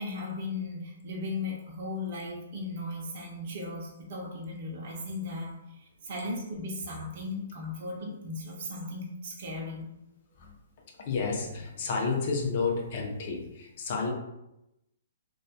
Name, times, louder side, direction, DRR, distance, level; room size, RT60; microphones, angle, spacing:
voice 1, 0.0-9.9, left 2 dB, 40° right, -3 dB, 0.4 m, -37 dB
voice 2, 11.1-14.1, left 4 dB, 40° left, -1 dB, 0.5 m, -30 dB
2.2 x 2.1 x 2.7 m, 0.89 s
hypercardioid pair, 170°, 0 cm